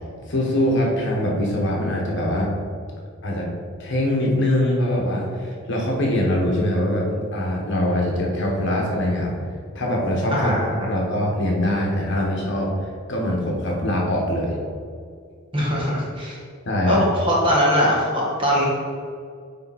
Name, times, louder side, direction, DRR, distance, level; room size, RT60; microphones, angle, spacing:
voice 1, 0.2-2.5 3.2-3.4 3.8-9.3 9.7-10.5 10.9-12.7 13.1-14.5 16.6-17.0, left 1 dB, 55° left, -2 dB, 1.3 m, -23 dB
voice 2, 15.5-16.4 16.8-18.7, equal, 25° right, -5 dB, 1.6 m, -21 dB
9.0 x 3.5 x 4.2 m, 2.2 s
head